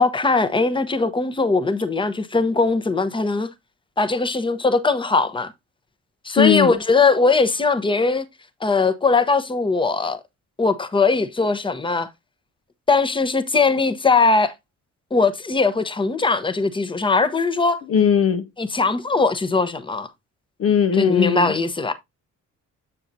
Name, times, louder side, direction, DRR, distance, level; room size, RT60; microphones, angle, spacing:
voice 1, 0.0-3.5 4.0-5.5 6.2-8.2 8.6-10.2 10.6-12.1 12.9-14.5 15.1-17.8 18.6-20.1 21.0-21.9, left 4 dB, 15° left, 0.9 m, -20 dB
voice 2, 6.4-6.7 17.9-18.5 20.6-21.5, left 7 dB, 50° left, 0.6 m, -18 dB
7.4 x 6.5 x 2.7 m
cardioid pair, 90°, 30 cm